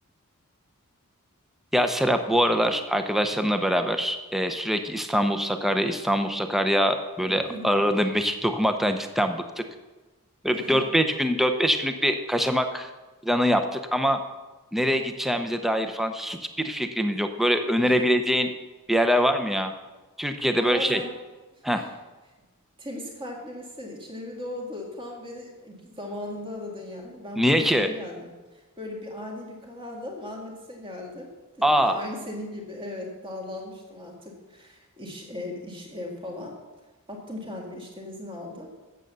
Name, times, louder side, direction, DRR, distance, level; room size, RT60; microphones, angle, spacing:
voice 1, 1.7-9.6 10.4-12.9 13.2-14.2 14.7-18.5 18.9-19.7 20.2-21.0 21.6-21.8 27.4-27.9 31.6-32.0, equal, ahead, 7 dB, 0.6 m, -24 dB
voice 2, 7.3-7.7 10.5-10.8 17.8-18.0 20.6-21.1 21.6-21.9 22.8-31.3 31.5-36.5 37.1-38.9, left 1 dB, 25° right, -1 dB, 1.9 m, -38 dB
9.0 x 7.5 x 6.7 m, 1.2 s
head